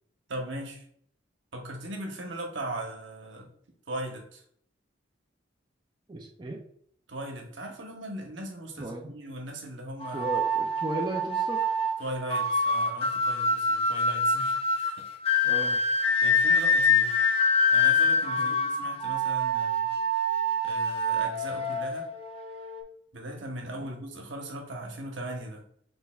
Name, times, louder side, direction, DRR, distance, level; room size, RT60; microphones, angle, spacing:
voice 1, 0.3-0.8 1.5-3.5 3.9-4.4 7.1-10.3 12.0-15.0 16.2-17.2 17.7-19.9 20.6-22.1 23.1-25.6, right 1 dB, 80° right, 1 dB, 1.0 m, -38 dB
voice 2, 6.1-6.6 8.8-9.1 10.1-11.8 15.4-15.8 18.4-18.6, right 1 dB, 25° right, 1 dB, 0.4 m, -36 dB
sound 1, 10.0-22.8, left 2 dB, 30° left, 0.6 m, -26 dB
6.3 x 3.4 x 2.3 m, 0.66 s
head